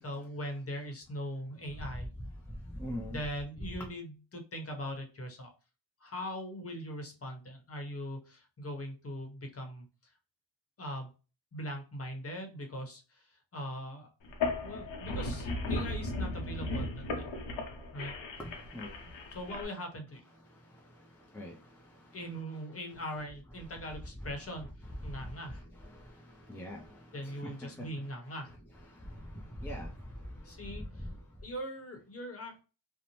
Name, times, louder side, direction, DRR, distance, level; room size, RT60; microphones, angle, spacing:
voice 1, 0.0-2.1 3.1-5.5 6.0-10.1 10.8-11.1 11.5-14.1 14.6-17.0 17.9-18.1 19.3-20.2 22.1-24.7 25.0-25.7 27.1-28.5 30.4-31.1 31.4-32.5, equal, 30° left, 3 dB, 0.9 m, -41 dB
voice 2, 2.7-3.2 18.4-18.5 18.7-18.9 21.3-21.5 25.8-26.0 26.5-26.9 27.2-27.9 29.6-29.9 31.0-31.1, equal, 5° left, -1 dB, 0.4 m, -40 dB
sound 1, 14.2-19.6, left 2 dB, 75° left, 0.8 m, -36 dB
2.7 x 2.0 x 2.9 m, 0.33 s
cardioid pair, 105°, 45 cm